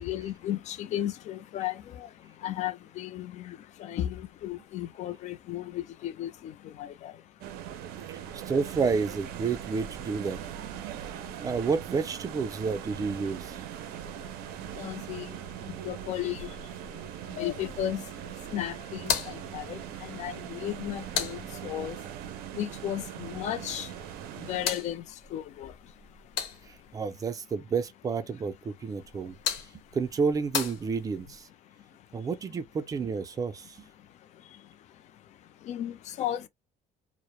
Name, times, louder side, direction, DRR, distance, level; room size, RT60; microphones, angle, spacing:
voice 1, 0.0-8.5 10.8-11.5 13.8-27.0 29.0-30.0 31.6-32.3 33.9-36.5, left 12 dB, 50° left, 0.4 m, -37 dB
sound 1, 7.4-24.7, right 10 dB, 85° right, 0.4 m, -40 dB
voice 2, 8.1-10.4 11.0-11.1 11.4-13.6 26.7-29.4 29.9-31.5 32.1-33.9, right 5 dB, 25° right, 0.4 m, -30 dB
sound 2, 19.0-22.0 24.0-27.0 29.0-31.4, left 7 dB, 90° left, 1.0 m, -37 dB
2.1 x 2.0 x 3.0 m
cardioid pair, 150°, 15 cm